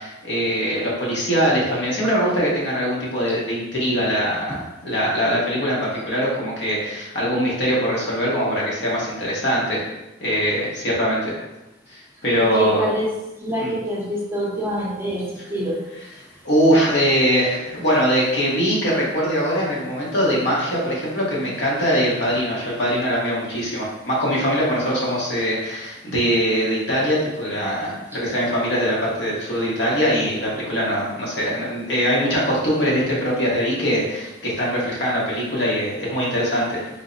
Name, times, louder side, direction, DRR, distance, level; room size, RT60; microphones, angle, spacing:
voice 1, 0.0-9.9 10.2-11.3 12.2-12.9 13.6-13.7 15.4-15.5 15.9-16.1 16.4-36.9, equal, 60° left, -5 dB, 1.2 m, -22 dB
voice 2, 12.5-13.1 13.4-15.2 15.5-15.8, right 1 dB, 10° right, -6 dB, 0.7 m, -25 dB
3.7 x 2.1 x 3.9 m, 0.99 s
head